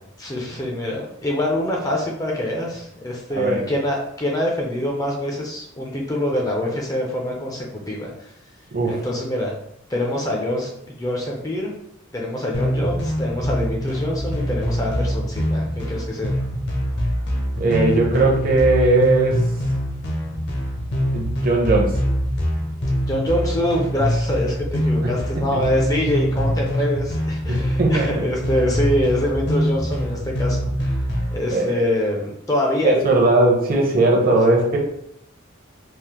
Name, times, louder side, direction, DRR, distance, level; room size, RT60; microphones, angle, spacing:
voice 1, 0.2-8.1 8.9-9.5 9.9-11.7 12.1-16.4 23.1-31.0 31.3-32.9 34.3-34.6, left 1 dB, 15° left, -1 dB, 0.4 m, -25 dB
voice 2, 3.3-3.6 8.7-9.0 17.6-19.4 21.1-21.9 25.0-25.1 25.5-25.6 27.5-28.2 31.5-31.9 32.8-34.8, right 2 dB, 45° right, -1 dB, 0.6 m, -18 dB
sound 1, 12.5-31.4, equal, 55° left, 0.6 m, -24 dB
3.3 x 2.0 x 2.9 m, 0.75 s
head